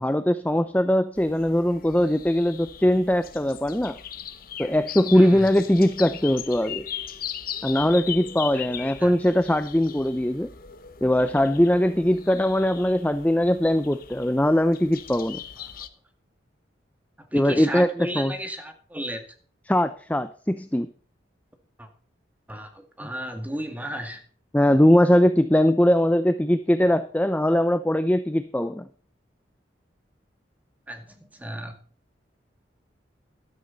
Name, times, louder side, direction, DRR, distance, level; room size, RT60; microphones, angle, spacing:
voice 1, 0.0-4.0 4.6-6.8 7.6-10.5 11.0-15.4 17.3-17.9 18.2-18.3 19.7-20.9 23.0-23.1 24.5-28.9, left 1 dB, 10° left, 11 dB, 0.5 m, -21 dB
sound 1, 1.2-15.9, left 9 dB, 50° left, 1.1 m, -39 dB
voice 2, 5.1-5.5 8.5-8.6 9.0-9.1 15.6-15.9 17.2-19.3 21.8-21.9 22.5-24.2 30.9-31.8, equal, 10° right, 6 dB, 1.9 m, -34 dB
14.0 x 12.5 x 4.0 m, 0.42 s
head